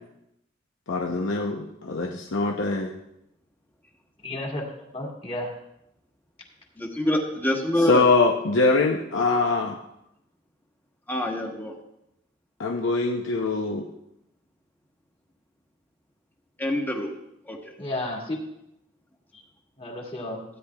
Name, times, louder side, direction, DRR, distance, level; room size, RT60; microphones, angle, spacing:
voice 1, 0.9-2.9 7.9-9.8 12.6-13.9, left 3 dB, 90° left, 1 dB, 0.7 m, -23 dB
voice 2, 4.2-4.6 4.9-5.5 17.8-18.4 19.8-20.4, left 1 dB, 30° left, -2 dB, 2.1 m, -32 dB
voice 3, 6.8-8.1 11.1-11.8 16.6-17.1 17.5-17.6, left 1 dB, 10° left, 1 dB, 1.3 m, -26 dB
16.0 x 9.9 x 2.3 m, 0.83 s
head